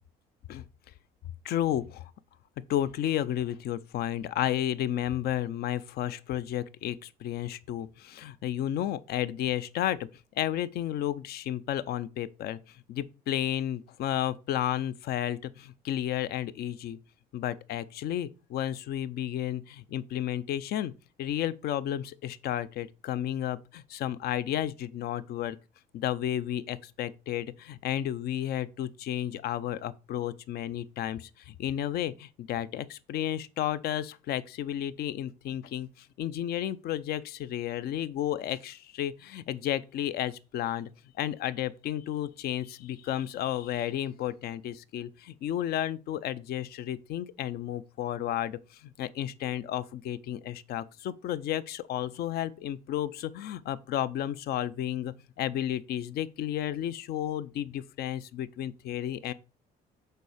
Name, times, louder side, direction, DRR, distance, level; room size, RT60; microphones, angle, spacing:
voice 1, 1.4-2.1 2.7-10.1 10.3-17.0 17.3-20.9 21.2-25.6 25.9-40.9 41.2-59.3, left 11 dB, 65° left, 0.6 m, -32 dB
6.8 x 4.7 x 4.9 m
cardioid pair, 110°, 17 cm